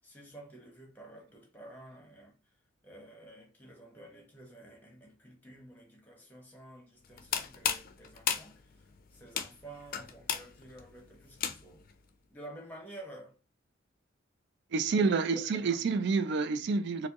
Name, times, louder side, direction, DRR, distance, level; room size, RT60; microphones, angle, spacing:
voice 1, 0.0-2.3 2.8-8.8 9.1-11.9 12.3-13.4 14.9-15.9, right 1 dB, 10° left, 1.2 m, -51 dB
sound 1, 7.0-11.9, left 8 dB, 50° left, 0.4 m, -35 dB
voice 2, 14.7-17.1, right 4 dB, 60° right, 0.4 m, -28 dB
4.3 x 2.0 x 2.9 m
head